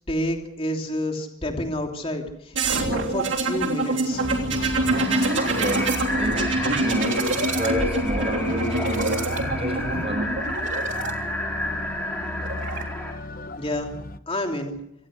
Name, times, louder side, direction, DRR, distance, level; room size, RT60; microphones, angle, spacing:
voice 1, 0.1-4.2 13.6-13.9 14.3-14.8, left 1 dB, 25° left, 3 dB, 3.0 m, -29 dB
sound 1, 2.5-11.1 12.2-12.8, right 2 dB, 60° right, 3.3 m, -26 dB
sound 2, 4.1-14.2, left 2 dB, 40° left, 0.9 m, -35 dB
sound 3, 4.9-13.1, left 1 dB, 5° left, 4.0 m, -31 dB
voice 2, 5.4-6.5 6.8-10.3, equal, 30° right, 5 dB, 6.1 m, -29 dB
26.0 x 18.5 x 6.4 m, 0.80 s
head